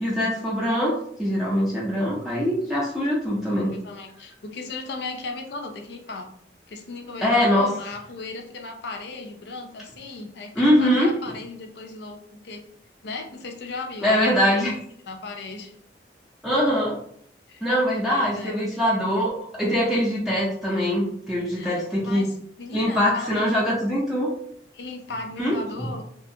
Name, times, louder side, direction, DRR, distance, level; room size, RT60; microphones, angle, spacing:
voice 1, 0.0-3.7 7.2-7.7 10.6-11.2 14.0-14.7 16.4-17.0 17.6-22.3 22.7-24.3 25.4-25.9, equal, ahead, -7 dB, 0.5 m, -23 dB
voice 2, 3.5-6.3 6.7-12.6 13.0-14.7 15.0-15.7 17.5-17.6 18.0-18.6 21.6-23.7 24.7-26.0, left 3 dB, 65° left, 4 dB, 0.5 m, -36 dB
2.7 x 2.5 x 2.6 m, 0.66 s
head